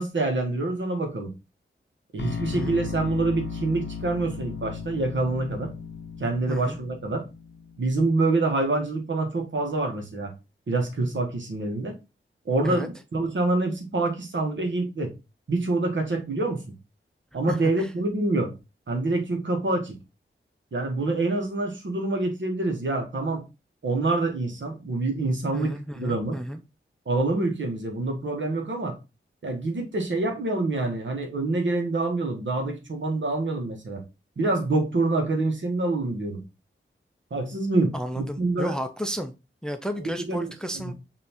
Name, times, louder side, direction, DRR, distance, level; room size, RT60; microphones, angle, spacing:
voice 1, 0.0-1.3 2.1-5.7 6.2-7.2 7.8-10.3 10.7-12.0 12.4-15.1 15.5-16.7 17.3-18.5 18.9-20.0 20.7-23.4 23.8-26.4 27.1-29.0 29.4-34.0 34.4-36.4 37.3-38.8 40.3-40.5 40.7-40.9, right 2 dB, 60° right, 1.2 m, -26 dB
sound 1, 2.2-8.2, left 6 dB, 55° left, 0.6 m, -35 dB
voice 2, 6.5-6.8 12.6-12.9 17.5-17.9 25.5-26.6 37.9-39.3 39.6-40.9, equal, 5° left, 0.5 m, -32 dB
5.1 x 2.7 x 2.9 m
cardioid pair, 50°, 21 cm